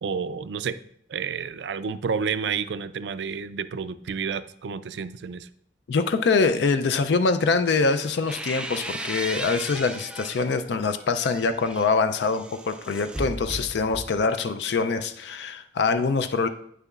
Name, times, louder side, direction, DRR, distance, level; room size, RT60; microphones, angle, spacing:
voice 1, 0.0-0.8 1.1-5.5, right 6 dB, 85° right, 14 dB, 0.4 m, -30 dB
voice 2, 5.9-16.5, left 4 dB, 80° left, 10 dB, 0.4 m, -24 dB
sound 1, 7.9-10.5 11.0-14.3, right 1 dB, 5° right, 0.3 m, -36 dB
9.1 x 6.7 x 2.4 m, 0.71 s
head